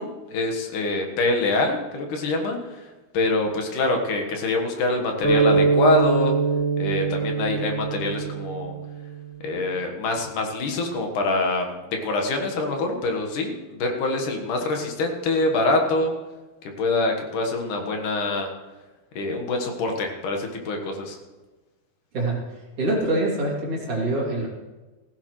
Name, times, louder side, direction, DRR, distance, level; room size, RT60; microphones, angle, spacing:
voice 1, 0.0-2.8 3.1-6.3 6.8-8.7 9.4-16.1 16.8-18.5 19.2-21.2, left 2 dB, 60° left, 3 dB, 2.8 m, -25 dB
sound 1, 5.2-9.5, right 4 dB, 20° left, 3.4 m, -23 dB
voice 2, 22.1-24.5, right 2 dB, 40° right, -4 dB, 3.4 m, -25 dB
16.5 x 15.5 x 3.2 m, 1.2 s
omnidirectional pair, 4.5 m